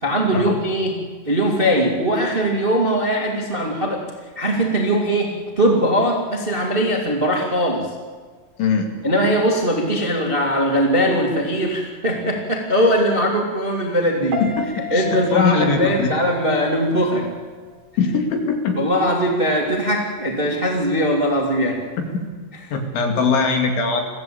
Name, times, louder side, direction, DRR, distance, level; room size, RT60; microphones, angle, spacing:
voice 1, 0.0-4.0 4.3-7.9 9.0-14.4 14.9-17.3 18.7-21.8, equal, 25° right, 0 dB, 1.2 m, -20 dB
Piano, 14.3-17.4 17.7-18.1, left 2 dB, 50° right, 2.3 m, -32 dB
voice 2, 14.9-16.1 18.0-18.8 22.7-24.0, left 4 dB, 85° left, 4 dB, 4.9 m, -21 dB
23.0 x 15.5 x 8.6 m, 1.5 s
omnidirectional pair, 5.2 m